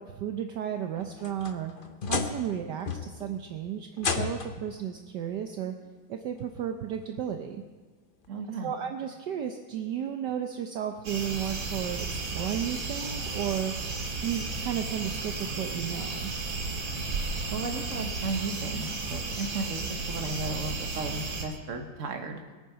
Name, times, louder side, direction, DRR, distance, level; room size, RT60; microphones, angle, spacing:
voice 1, 0.0-1.7 2.1-5.7 6.1-7.6 8.6-13.7 14.2-16.3, right 9 dB, 65° right, 5 dB, 1.3 m, -33 dB
sound 1, 1.0-2.5 2.9-3.3 4.0-4.7 5.8-5.9 6.6-6.7 8.3-8.4, left 5 dB, 45° left, 0.6 m, -32 dB
voice 2, 8.3-8.7 17.5-19.8 20.1-22.4, right 3 dB, 45° right, 5 dB, 1.6 m, -35 dB
sound 2, 11.0-21.4, right 3 dB, 85° right, 2.8 m, -34 dB
22.0 x 9.1 x 5.7 m, 1.4 s
omnidirectional pair, 2.1 m